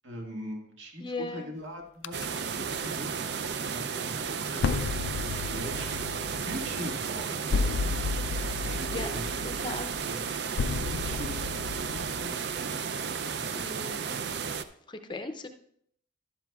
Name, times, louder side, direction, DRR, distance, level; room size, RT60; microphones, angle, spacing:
voice 1, 0.0-5.2 5.5-8.1 8.6-9.5 9.8-10.2 10.8-12.3 13.3-13.6, equal, 80° right, 1 dB, 1.8 m, -42 dB
voice 2, 1.0-1.5 8.9-9.2 9.6-9.9 13.5-14.0 14.9-15.5, left 2 dB, 25° left, 7 dB, 0.5 m, -37 dB
sound 1, 2.0-2.3 4.6-12.3, left 4 dB, 85° left, 0.4 m, -33 dB
sound 2, 2.1-14.6, right 6 dB, 60° right, 0.4 m, -33 dB
12.0 x 11.0 x 2.3 m, 0.68 s
head